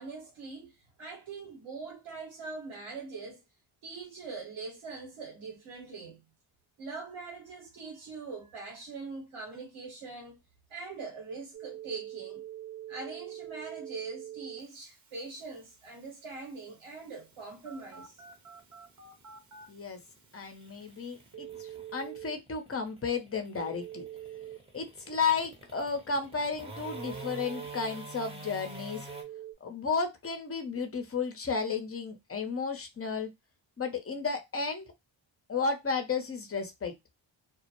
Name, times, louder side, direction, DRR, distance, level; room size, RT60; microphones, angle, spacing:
voice 1, 0.0-3.4 3.8-6.2 6.8-10.4 10.7-12.4 12.9-18.2, right 4 dB, 75° right, 1.2 m, -42 dB
Telephone, 11.5-22.3 23.6-24.6 26.8-27.9 29.1-29.5, right 11 dB, 35° right, 0.9 m, -46 dB
sound 1, 17.3-29.2, right 1 dB, 10° right, 0.9 m, -48 dB
voice 2, 19.7-20.0 20.3-24.0 24.7-29.1 29.6-33.3 33.8-34.8 35.5-36.9, left 5 dB, 30° left, 0.8 m, -33 dB
2.3 x 2.1 x 3.0 m
cardioid pair, 50°, 49 cm